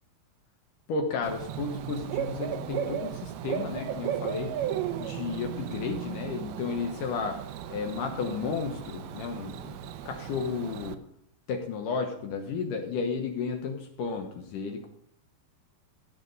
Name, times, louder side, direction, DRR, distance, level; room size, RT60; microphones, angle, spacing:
voice 1, 0.9-4.5 5.0-7.4 7.7-11.0 11.5-14.9, left 5 dB, 65° left, 4 dB, 2.4 m, -33 dB
Bird / Cricket, 1.2-10.9, right 10 dB, 80° right, 2.6 m, -35 dB
14.5 x 7.3 x 5.3 m, 0.67 s
omnidirectional pair, 4.5 m